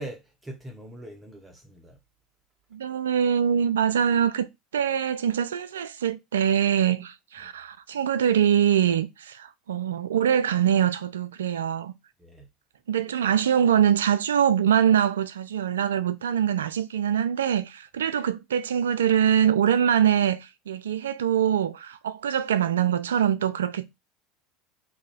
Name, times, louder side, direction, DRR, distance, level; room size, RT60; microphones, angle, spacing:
voice 1, 0.0-2.0 7.4-7.5 12.2-12.5, right 1 dB, 15° right, 0.9 m, -42 dB
voice 2, 2.7-4.5 4.7-11.9 12.9-23.8, right 9 dB, 85° right, 0.3 m, -23 dB
2.8 x 2.3 x 4.0 m
hypercardioid pair, 85°, 0 cm